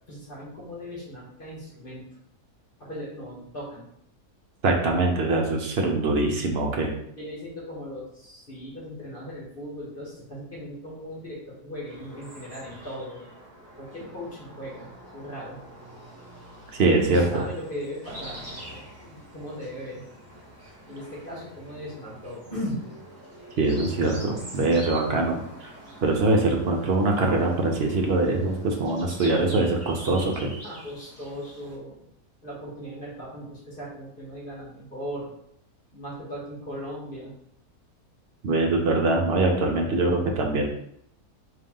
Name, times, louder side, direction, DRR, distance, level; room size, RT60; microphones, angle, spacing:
voice 1, 0.1-2.0 2.8-3.8 7.2-13.3 13.8-15.6 17.0-18.4 19.0-20.0 20.9-22.8 30.6-32.0 32.4-35.3 35.9-37.3, equal, 35° left, -6 dB, 1.3 m, -38 dB
voice 2, 4.6-6.9 16.8-17.4 23.6-25.7 26.0-30.5 38.4-40.7, right 2 dB, 65° right, 1 dB, 0.6 m, -23 dB
sound 1, 11.8-31.8, right 1 dB, 10° right, 1.0 m, -45 dB
3.9 x 2.7 x 3.6 m, 0.74 s
omnidirectional pair, 1.6 m